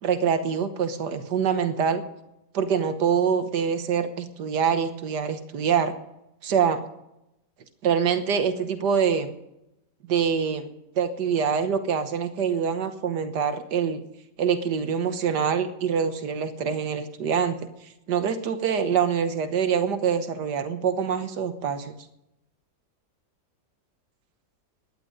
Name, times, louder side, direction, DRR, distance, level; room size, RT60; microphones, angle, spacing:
voice 1, 0.0-2.0 2.5-5.9 6.4-6.8 7.8-9.3 10.0-10.7 10.9-14.0 14.4-17.6 18.1-21.9, right 7 dB, 70° right, 10 dB, 1.7 m, -25 dB
17.5 x 11.5 x 5.2 m, 0.87 s
omnidirectional pair, 1.9 m